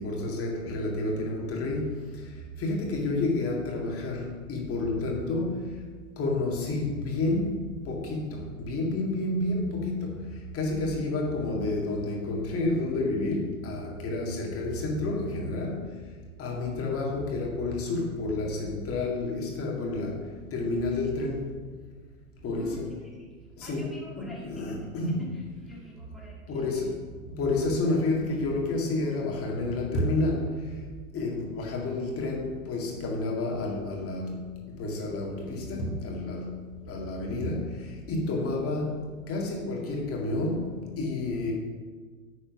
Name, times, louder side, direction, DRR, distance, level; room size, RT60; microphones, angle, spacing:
voice 1, 0.0-5.8 6.2-15.9 16.4-21.5 22.4-22.9 23.6-25.4 26.5-27.0 27.4-30.8 31.1-36.6 36.9-41.5, left 2 dB, 30° left, -1 dB, 2.1 m, -30 dB
voice 2, 16.5-16.8 22.5-23.2 23.6-24.9 25.2-26.7, equal, ahead, -5 dB, 1.9 m, -45 dB
9.5 x 4.3 x 5.9 m, 1.5 s
hypercardioid pair, 115°, 46 cm